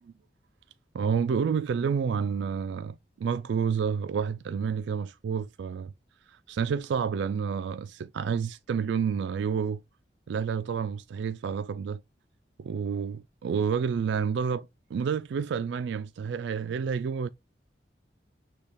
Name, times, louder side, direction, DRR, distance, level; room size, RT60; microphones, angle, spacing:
voice 1, 0.9-5.9 6.3-9.8 10.3-12.0 12.6-17.3, right 6 dB, 75° right, 0.3 m, -29 dB
6.4 x 2.3 x 3.4 m
head